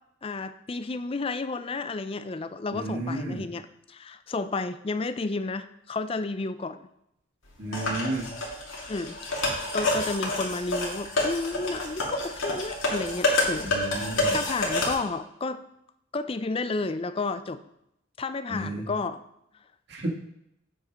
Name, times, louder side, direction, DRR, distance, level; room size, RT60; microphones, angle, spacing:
voice 1, 0.2-6.9 8.9-9.4 9.7-15.6 16.1-17.6 18.2-19.2, left 3 dB, 25° left, 11 dB, 0.4 m, -32 dB
voice 2, 2.7-3.4 7.6-8.3 13.6-14.4 18.5-18.8 19.9-20.1, right 1 dB, 55° right, -2 dB, 1.7 m, -32 dB
sound 1, 7.7-14.9, left 2 dB, 85° left, 2.3 m, -28 dB
8.3 x 5.0 x 5.2 m, 0.80 s
head